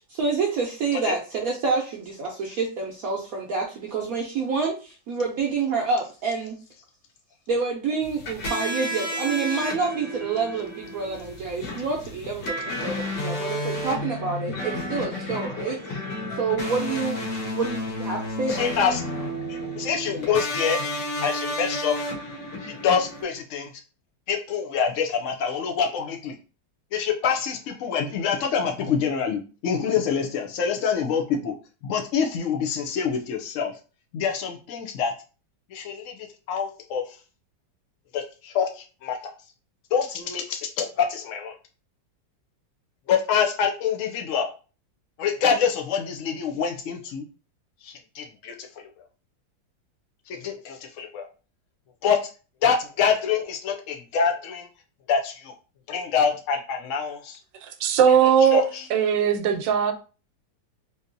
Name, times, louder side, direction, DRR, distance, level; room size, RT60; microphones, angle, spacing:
voice 1, 0.1-6.6 7.5-16.0 16.3-18.7, right 4 dB, 65° right, 0.9 m, -28 dB
sound 1, 8.0-23.2, left 1 dB, 70° left, 1.8 m, -31 dB
voice 2, 18.5-19.0 19.5-20.8 21.2-21.9 22.6-23.7 24.3-26.3 26.9-31.5 31.8-33.7 34.1-35.1 35.7-36.1 36.5-37.2 38.1-39.2 39.9-41.5 43.1-44.5 45.2-47.3 47.8-48.7 50.3-51.3 52.0-52.2 52.6-54.7 55.1-55.5 55.9-57.4 58.4-58.9, left 6 dB, 85° left, 0.6 m, -26 dB
voice 3, 57.6-58.6 58.9-59.9, right 8 dB, 85° right, 1.3 m, -19 dB
3.6 x 2.7 x 2.6 m
omnidirectional pair, 2.0 m